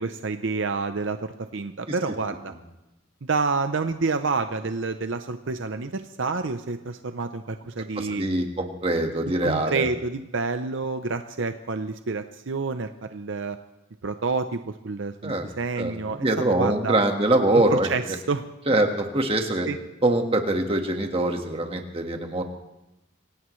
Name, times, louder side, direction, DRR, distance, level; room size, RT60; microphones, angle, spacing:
voice 1, 0.0-2.5 3.2-8.3 9.4-13.6 14.0-16.3 16.6-17.0 17.5-18.4 19.7-19.8, right 4 dB, 65° right, 8 dB, 0.6 m, -28 dB
voice 2, 8.0-9.9 15.2-15.4 15.8-17.9 18.7-19.7 20.0-22.4, right 1 dB, 30° right, 4 dB, 1.6 m, -23 dB
26.0 x 17.5 x 3.2 m, 0.96 s
head